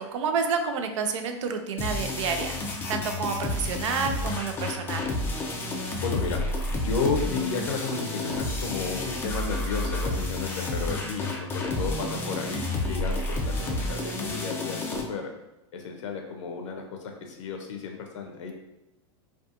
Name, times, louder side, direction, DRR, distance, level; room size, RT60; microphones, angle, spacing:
voice 1, 0.0-2.6 2.9-5.1, right 5 dB, 85° right, 5 dB, 0.4 m, -29 dB
sound 1, 1.8-15.0, left 2 dB, 15° left, 0.3 m, -30 dB
voice 2, 6.0-6.4 6.7-15.3 15.7-18.5, left 4 dB, 85° left, 3 dB, 0.4 m, -33 dB
2.6 x 2.3 x 2.4 m, 0.99 s
supercardioid pair, 135°, 15 cm